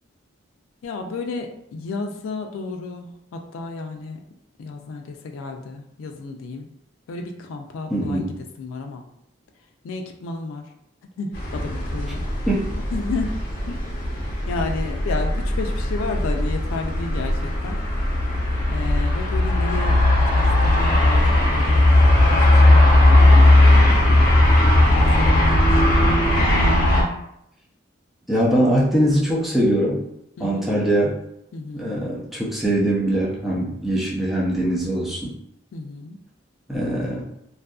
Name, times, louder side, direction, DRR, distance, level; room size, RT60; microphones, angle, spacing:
voice 1, 0.8-4.2 4.6-6.7 7.1-9.1 9.8-10.7 11.2-12.2 12.9-13.8 14.5-17.8 18.7-21.9 22.2-23.9 24.9-26.3 30.4-30.7 31.5-32.0 35.7-36.2, left 3 dB, 90° left, 3 dB, 0.3 m, -32 dB
voice 2, 7.9-8.3 12.5-12.7 28.3-30.0 30.4-31.2 31.7-35.3 36.7-37.2, right 1 dB, ahead, -6 dB, 0.5 m, -22 dB
sound 1, 11.3-27.0, left 1 dB, 50° left, 0.8 m, -17 dB
2.6 x 2.4 x 2.3 m, 0.78 s
head